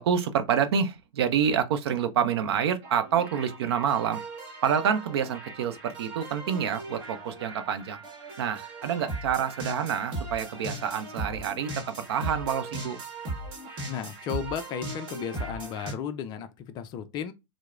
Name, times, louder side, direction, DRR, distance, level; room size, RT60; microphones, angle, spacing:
voice 1, 0.0-4.2 4.6-8.0 8.4-13.0, right 8 dB, 60° right, 0.6 m, -27 dB
sound 1, 2.8-15.9, right 2 dB, 30° right, 1.3 m, -38 dB
voice 2, 13.8-17.3, left 8 dB, 30° left, 0.4 m, -34 dB
4.6 x 2.0 x 2.3 m
figure-of-eight pair, 105°, 15 cm